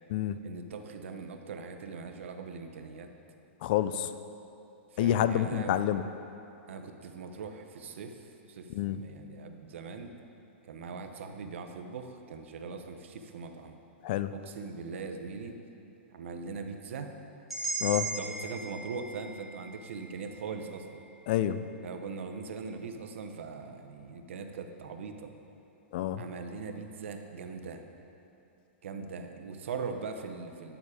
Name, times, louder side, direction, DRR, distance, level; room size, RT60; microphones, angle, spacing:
voice 1, 0.4-3.1 4.9-5.7 6.7-10.1 10.6-13.8 14.3-15.6 16.1-17.1 18.2-21.0 21.8-25.3 26.2-27.8 28.8-30.8, right 5 dB, 75° right, 6 dB, 0.9 m, -41 dB
voice 2, 3.6-4.1 5.0-6.0 8.7-9.0 14.0-14.3 17.8-18.1 21.3-21.7 25.9-26.2, left 11 dB, 45° left, 12 dB, 0.4 m, -28 dB
sound 1, 17.5-21.5, right 3 dB, ahead, 1.6 m, -39 dB
10.0 x 7.2 x 4.9 m, 2.8 s
hypercardioid pair, 155°, 7 cm